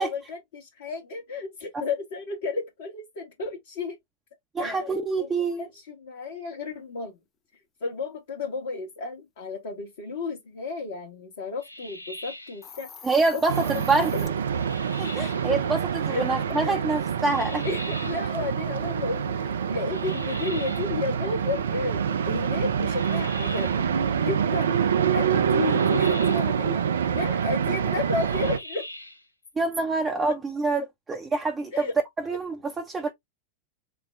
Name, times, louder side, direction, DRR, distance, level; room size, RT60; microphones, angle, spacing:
voice 1, 0.0-4.0 4.6-5.3 5.6-7.2 7.8-12.9 13.3-13.4 14.1-14.2 16.1-16.3 16.6-16.9 17.5-24.8 25.1-28.9 30.2-30.3 31.7-31.9, left 4 dB, 55° left, 1.0 m, -33 dB
voice 2, 4.5-5.7 13.0-14.3 15.0-15.8 16.1-17.6 29.6-31.9 32.3-33.1, right 3 dB, 15° right, 0.6 m, -26 dB
sound 1, 11.6-12.7 14.5-15.5 17.3-18.3 19.9-21.0 22.9-23.9 25.5-26.6 28.2-29.3, left 1 dB, 85° left, 0.5 m, -41 dB
Hiss, 12.5-14.3, left 6 dB, 30° left, 0.7 m, -45 dB
sound 2, 13.5-28.6, right 7 dB, 65° right, 0.4 m, -26 dB
4.4 x 2.1 x 3.2 m
figure-of-eight pair, 90°, 0 cm